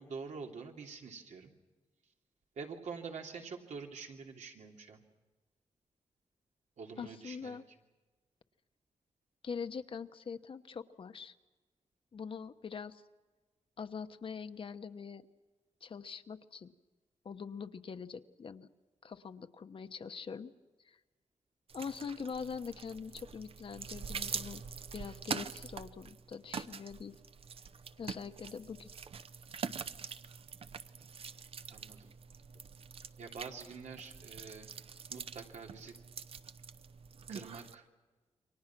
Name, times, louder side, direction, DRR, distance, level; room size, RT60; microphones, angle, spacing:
voice 1, 0.0-1.5 2.6-5.0 6.8-7.6 31.7-32.1 33.2-34.7 35.1-36.0 37.3-37.9, right 5 dB, 85° right, 2 dB, 3.0 m, -46 dB
voice 2, 7.0-7.6 9.4-11.3 12.1-13.0 13.8-15.2 15.8-16.7 17.2-18.7 19.0-20.5 20.9-21.0 21.7-24.6 24.9-27.2 28.0-28.9, left 6 dB, 50° left, 10 dB, 1.0 m, -43 dB
sound 1, 21.7-37.7, right 6 dB, 55° right, 0.8 m, -45 dB
29.0 x 24.5 x 6.0 m, 1.3 s
wide cardioid pair, 170°, 12 cm